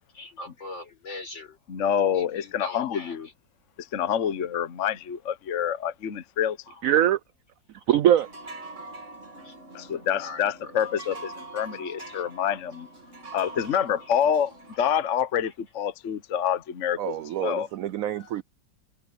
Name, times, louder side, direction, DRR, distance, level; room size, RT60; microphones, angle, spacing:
voice 1, 0.1-1.6 2.1-3.3 6.7-6.8 9.4-9.6 10.2-10.7 11.9-12.2 12.5-12.6 13.1-13.3 15.4-15.5, left 2 dB, 85° left, 6.3 m, -42 dB
voice 2, 1.7-3.3 3.8-6.6 9.7-12.9 13.3-14.5 14.8-17.7, left 9 dB, 45° left, 1.2 m, -27 dB
voice 3, 6.8-7.2 7.9-8.3 17.0-18.4, right 11 dB, 85° right, 0.7 m, -23 dB
sound 1, 8.2-14.8, right 2 dB, 40° right, 3.0 m, -43 dB
omnidirectional pair, 2.0 m